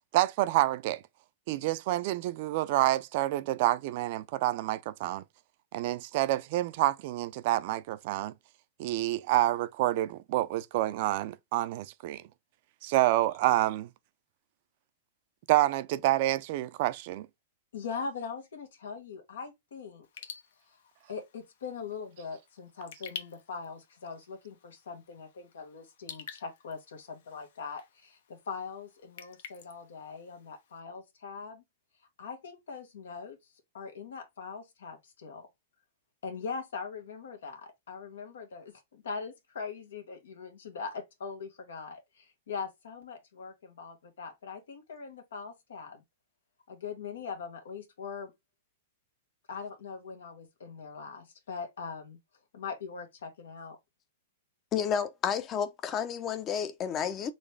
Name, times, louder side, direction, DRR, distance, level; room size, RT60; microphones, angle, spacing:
voice 1, 0.1-1.0 1.5-5.2 5.7-8.3 8.8-12.2 12.8-13.9 15.5-17.3, right 16 dB, 50° right, 0.5 m, -28 dB
voice 2, 17.7-20.0 21.1-31.6 32.2-33.4 33.7-35.5 36.2-46.0 46.7-48.3 49.5-52.2 52.5-53.8, left 5 dB, 90° left, 1.5 m, -41 dB
Raindrop / Drip, 20.0-30.8, left 8 dB, 70° left, 0.9 m, -50 dB
voice 3, 54.7-57.3, left 7 dB, 30° left, 0.7 m, -31 dB
4.0 x 3.1 x 3.2 m
hypercardioid pair, 140°, 0 cm